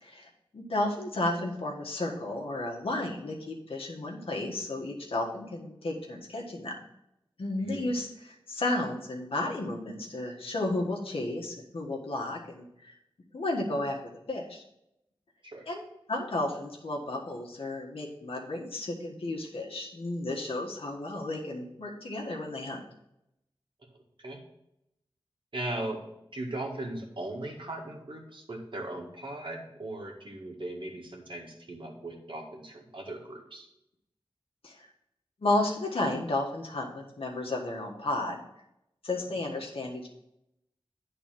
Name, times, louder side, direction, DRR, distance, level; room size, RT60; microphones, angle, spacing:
voice 1, 0.0-6.7 7.4-12.9 13.3-14.6 15.7-15.8 16.1-22.8 34.6-34.9 35.4-38.4 39.0-40.1, left 2 dB, 80° left, -1 dB, 1.5 m, -33 dB
voice 2, 7.6-7.9 15.4-15.7 24.2-24.4 25.5-26.0 26.3-33.7, right 1 dB, 60° right, 1 dB, 1.7 m, -38 dB
9.1 x 4.0 x 5.8 m, 0.83 s
wide cardioid pair, 50°, 9 cm